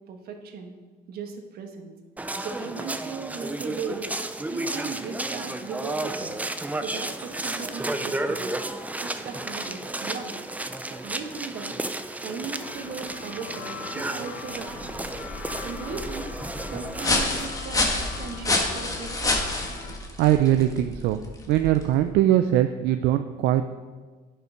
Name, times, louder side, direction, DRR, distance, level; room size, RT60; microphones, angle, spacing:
voice 1, 0.1-0.7 1.1-1.9 2.4-4.1 4.5-6.4 6.8-8.6 9.0-10.3 10.9-11.8 12.2-15.1 15.6-16.3 16.7-19.3, right 5 dB, 65° right, 5 dB, 1.3 m, -37 dB
sound 1, 2.2-17.5, right 2 dB, 10° right, 0.5 m, -33 dB
sound 2, 12.4-20.0, left 5 dB, 70° left, 1.2 m, -41 dB
sound 3, 14.6-22.0, left 2 dB, 20° left, 1.5 m, -29 dB
voice 2, 20.2-21.2 21.5-23.6, right 12 dB, 85° right, 9 dB, 0.4 m, -21 dB
10.5 x 5.7 x 5.0 m, 1.4 s
cardioid pair, 110°, 17 cm